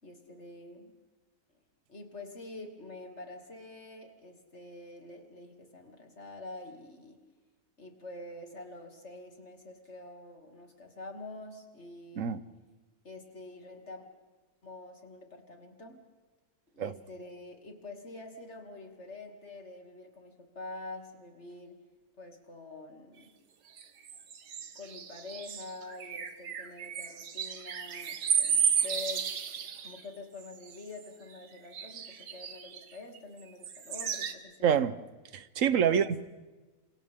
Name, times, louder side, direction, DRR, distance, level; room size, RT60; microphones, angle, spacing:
voice 1, 0.0-1.0 1.9-7.2 7.8-12.4 13.0-14.1 14.6-16.0 16.7-21.7 22.2-23.3 24.7-29.3 29.8-34.9 35.8-36.3, left 2 dB, 45° left, 2.8 m, -46 dB
sound 1, 23.8-30.0 30.4-31.1 31.7-33.2 33.6-34.3, right 7 dB, 85° right, 1.8 m, -33 dB
voice 2, 34.6-34.9 35.3-36.3, right 8 dB, 60° right, 1.1 m, -26 dB
29.0 x 27.0 x 3.7 m
omnidirectional pair, 1.7 m